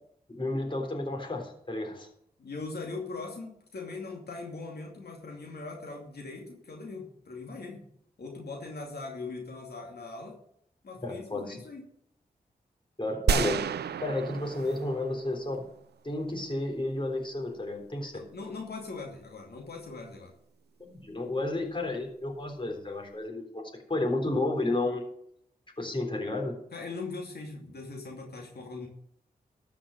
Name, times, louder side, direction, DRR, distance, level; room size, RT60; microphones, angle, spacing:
voice 1, 0.3-2.1 11.0-11.6 13.0-15.7 16.0-18.2 20.8-25.0 25.8-26.5, left 2 dB, 30° left, 1 dB, 3.6 m, -32 dB
voice 2, 2.4-7.8 8.2-10.4 10.8-11.8 18.1-20.3 26.7-28.9, left 3 dB, 75° left, 0 dB, 2.6 m, -40 dB
sound 1, 13.3-15.6, right 8 dB, 90° right, 0.4 m, -30 dB
13.0 x 6.0 x 7.6 m, 0.71 s
cardioid pair, 40°, 17 cm